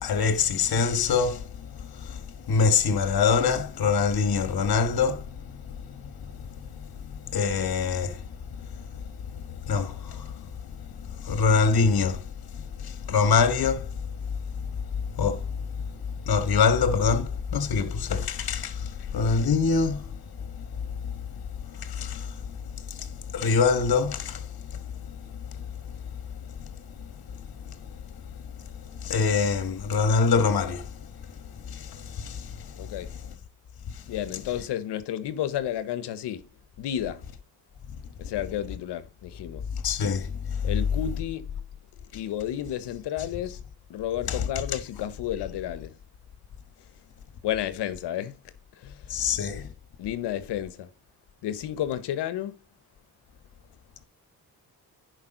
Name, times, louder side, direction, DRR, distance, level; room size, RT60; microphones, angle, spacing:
voice 1, 0.0-1.4 2.1-2.2 2.5-5.2 7.3-8.2 9.7-10.3 11.2-12.2 12.8-13.8 15.2-15.4 16.3-18.8 19.1-20.1 21.8-22.3 22.9-23.0 23.3-24.4 29.0-30.8 31.7-31.9 32.2-32.5 39.8-40.3 44.3-44.4 49.1-49.7, left 5 dB, 65° left, 1.4 m, -24 dB
voice 2, 32.8-33.1 34.1-36.4 36.8-37.2 38.2-39.6 40.6-41.5 42.1-43.6 43.9-45.9 47.4-48.3 48.8-49.0 50.0-50.9 51.4-52.6, left 11 dB, 90° left, 1.0 m, -31 dB
10.5 x 4.9 x 3.8 m
cardioid pair, 65°, 40 cm